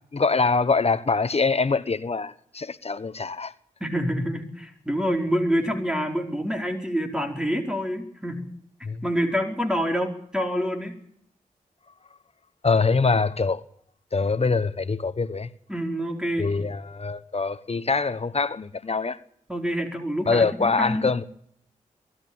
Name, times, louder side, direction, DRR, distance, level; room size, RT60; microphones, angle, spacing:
voice 1, 0.1-3.5 8.8-9.0 12.6-13.6 14.1-15.5 16.4-19.2 20.2-21.2, left 4 dB, 45° left, 1.1 m, -24 dB
voice 2, 3.8-8.5 9.0-11.0 15.7-16.5 19.5-21.1, equal, 5° right, 4.7 m, -27 dB
23.0 x 13.0 x 8.7 m
cardioid pair, 45°, 14 cm